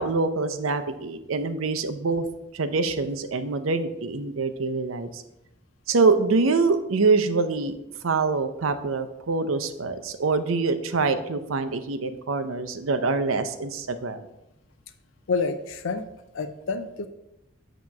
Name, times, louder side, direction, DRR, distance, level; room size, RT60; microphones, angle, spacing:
voice 1, 0.0-2.3 2.5-5.2 5.9-7.7 8.0-14.2, right 4 dB, 90° right, 9 dB, 0.6 m, -25 dB
voice 2, 15.3-16.1 16.3-17.1, left 4 dB, 75° left, 9 dB, 0.5 m, -28 dB
7.5 x 3.0 x 5.8 m, 0.87 s
head